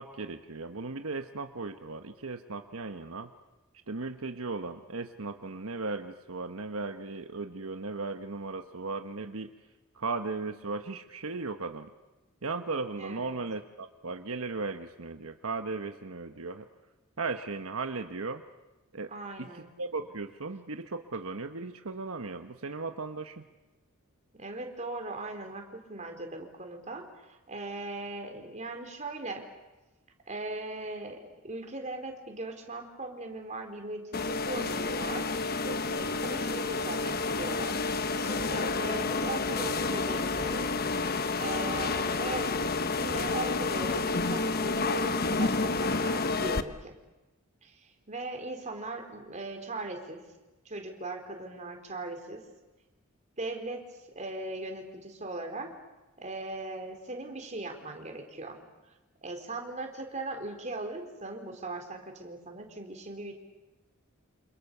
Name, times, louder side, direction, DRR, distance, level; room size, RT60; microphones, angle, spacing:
voice 1, 0.0-3.3 3.9-9.5 9.9-11.9 12.4-16.7 17.2-18.4 18.9-19.1 19.4-23.4, right 3 dB, 80° right, 7 dB, 1.3 m, -36 dB
voice 2, 13.0-13.4 19.1-19.7 24.3-29.5 30.3-35.3 35.6-37.8 38.2-40.7 41.4-42.5 43.0-46.9 47.6-50.2 50.6-52.4 53.4-53.8 54.2-55.7 56.2-58.6 59.2-63.3, right 2 dB, 35° right, 4 dB, 4.1 m, -39 dB
sound 1, 34.1-46.6, left 3 dB, 45° left, 1.1 m, -30 dB
28.5 x 28.0 x 6.9 m, 1.1 s
head